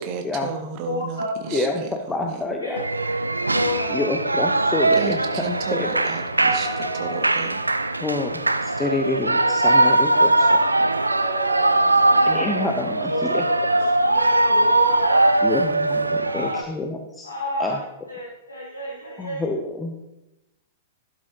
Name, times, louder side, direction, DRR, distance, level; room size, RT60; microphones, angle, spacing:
voice 1, 0.0-2.4 4.9-6.7 6.9-7.6, right 6 dB, 40° right, 5 dB, 1.4 m, -33 dB
voice 2, 0.8-1.6 2.6-2.8 3.5-4.2 6.4-7.2 8.8-8.9 9.4-9.9 10.4-10.5 11.1-12.4 13.1-15.6 16.2-16.6 17.2-17.8 18.1-19.4, equal, 80° left, -5 dB, 2.5 m, -30 dB
voice 3, 1.5-2.8 3.9-6.0 8.0-10.3 12.2-13.5 15.4-17.3 17.6-17.8 19.2-19.9, left 2 dB, 10° left, 3 dB, 1.0 m, -27 dB
Shout / Cheering, 2.8-16.6, right 2 dB, 85° right, 0.5 m, -21 dB
12.0 x 12.0 x 2.9 m, 0.94 s
figure-of-eight pair, 100°, 0 cm